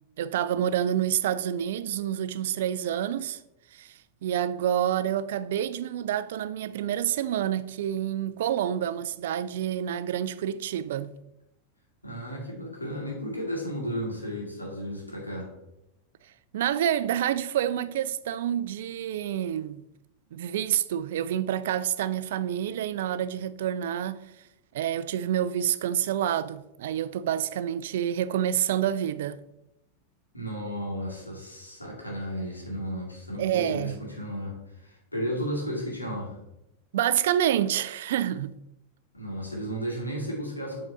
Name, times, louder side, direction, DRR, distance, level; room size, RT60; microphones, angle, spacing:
voice 1, 0.2-3.4 3.7-11.1 16.5-19.8 20.3-24.2 24.7-29.4 33.4-34.0 36.9-38.6, right 10 dB, 55° right, 0.3 m, -28 dB
voice 2, 12.0-15.5 30.3-36.4 39.1-40.8, equal, 85° left, 2.0 m, -34 dB
7.9 x 3.8 x 4.2 m
figure-of-eight pair, 90°, 0 cm